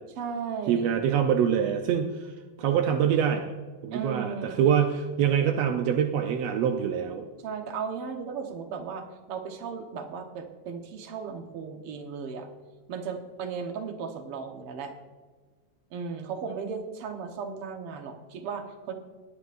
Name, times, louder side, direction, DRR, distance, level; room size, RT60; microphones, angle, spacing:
voice 1, 0.2-1.0 3.9-4.6 7.4-12.5 12.9-14.9 15.9-18.9, right 6 dB, 60° right, 5 dB, 1.6 m, -36 dB
voice 2, 0.7-2.3 2.6-3.5 3.8-7.2, right 8 dB, 80° right, 5 dB, 1.4 m, -25 dB
19.0 x 10.5 x 2.5 m, 1.4 s
omnidirectional pair, 3.7 m